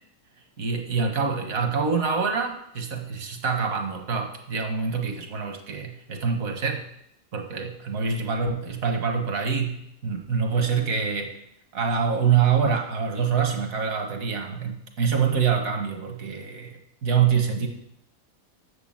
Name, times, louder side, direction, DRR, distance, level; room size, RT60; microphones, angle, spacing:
voice 1, 0.6-6.8 7.3-11.4 11.7-17.7, right 6 dB, 75° right, 4 dB, 1.7 m, -25 dB
7.0 x 6.6 x 7.3 m, 0.73 s
omnidirectional pair, 1.5 m